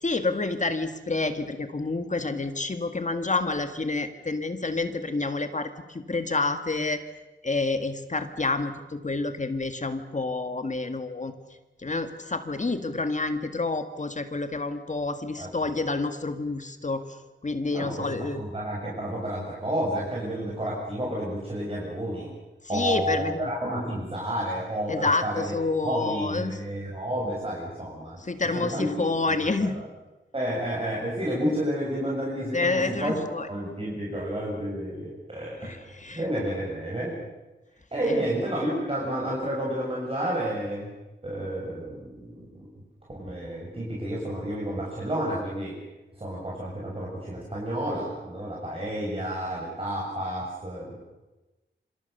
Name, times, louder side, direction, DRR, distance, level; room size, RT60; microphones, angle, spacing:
voice 1, 0.0-7.0 7.4-11.3 11.8-17.0 17.4-18.4 22.7-23.5 24.9-26.6 28.3-29.8 32.5-33.5 35.6-36.2 38.1-38.2, left 3 dB, 40° left, 8 dB, 1.9 m, -28 dB
voice 2, 17.7-22.3 22.7-25.5 25.8-28.2 28.5-28.9 29.3-29.8 30.3-33.1 33.5-37.2 37.9-40.9 41.2-42.8 43.2-45.7 46.2-51.0, equal, 30° right, -4 dB, 6.9 m, -31 dB
27.0 x 26.5 x 6.8 m, 1.1 s
wide cardioid pair, 115°, 20 cm